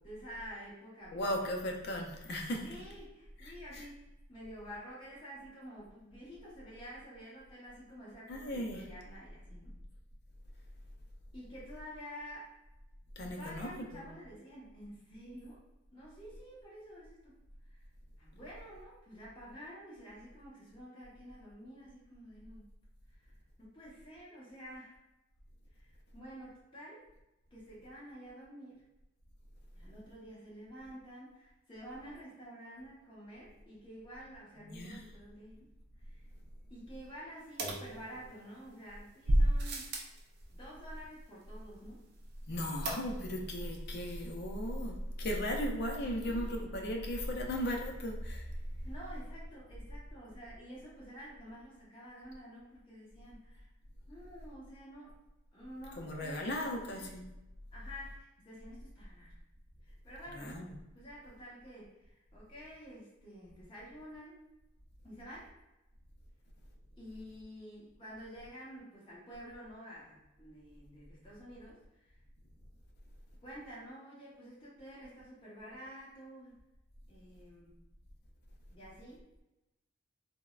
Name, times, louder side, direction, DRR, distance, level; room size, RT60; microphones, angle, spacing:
voice 1, 0.0-1.4 2.6-9.7 11.3-12.5 13.2-15.6 15.9-17.3 17.7-17.8 18.2-22.7 23.2-23.3 23.6-24.9 25.7-27.1 27.5-28.8 29.7-35.7 36.0-36.2 36.7-39.9 40.5-42.1 46.1-46.7 48.8-53.7 54.1-55.1 55.5-57.1 57.7-59.3 59.8-60.6 60.9-64.4 65.0-65.5 67.0-72.1 73.4-76.6 77.1-77.8 78.7-79.2, equal, 25° left, -7 dB, 0.9 m, -50 dB
voice 2, 1.1-2.6 3.4-3.8 8.3-8.8 13.2-14.1 34.6-35.0 42.5-48.4 56.0-57.2 60.4-60.7, equal, 50° left, 1 dB, 0.4 m, -36 dB
sound 1, 37.6-38.6 39.3-40.2 42.9-43.4 43.7-43.8 44.1-44.2, right 1 dB, 50° right, 0.4 m, -31 dB
3.4 x 2.0 x 2.3 m, 0.95 s
head